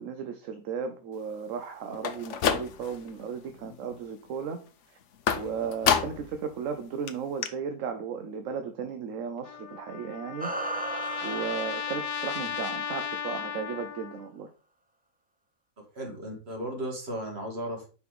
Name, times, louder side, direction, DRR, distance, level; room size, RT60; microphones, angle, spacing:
voice 1, 0.0-4.6 5.3-10.5 11.2-14.5, right 6 dB, 70° right, 7 dB, 1.0 m, -35 dB
sound 1, 1.9-3.1 3.5-4.0 5.3-6.4 6.7-6.8 7.1-7.2 7.4-7.5, left 8 dB, 60° left, 0.9 m, -28 dB
Trumpet, 9.4-14.3, left 8 dB, 80° left, 1.1 m, -35 dB
sound 2, 10.4-13.2, right 2 dB, 10° right, 0.4 m, -37 dB
voice 2, 15.8-17.9, right 1 dB, 45° right, 2 dB, 2.0 m, -35 dB
5.5 x 4.2 x 4.7 m, 0.36 s
omnidirectional pair, 1.5 m